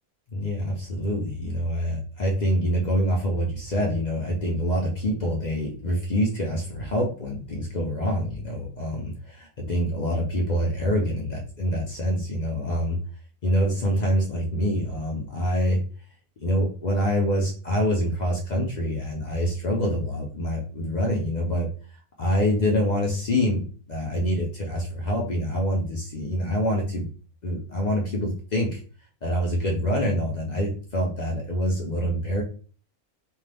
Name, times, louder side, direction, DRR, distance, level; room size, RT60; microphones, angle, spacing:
voice 1, 0.3-13.0 13.4-15.8 16.4-21.7 22.2-23.6 23.9-27.1 27.4-28.8 29.2-32.4, equal, 65° left, -1 dB, 0.4 m, -26 dB
2.6 x 2.2 x 3.3 m, 0.40 s
omnidirectional pair, 1.5 m